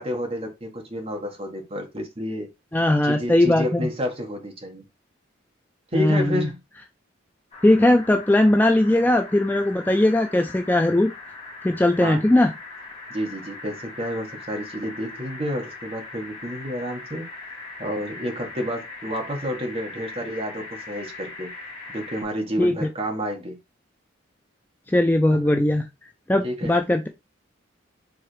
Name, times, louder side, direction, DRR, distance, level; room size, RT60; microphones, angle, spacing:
voice 1, 0.0-2.5 3.0-4.8 5.9-6.6 12.0-12.2 13.1-17.2 17.8-21.5 21.9-23.6 25.3-25.6 26.4-26.7, equal, 30° right, 1.3 m, -30 dB
voice 2, 2.7-3.9 5.9-6.5 7.6-11.1 11.6-12.5 22.6-22.9 24.9-25.9 26.3-27.1, left 1 dB, 10° left, 0.3 m, -19 dB
sound 1, 7.5-22.2, left 3 dB, 30° left, 1.5 m, -40 dB
4.8 x 3.5 x 3.1 m
head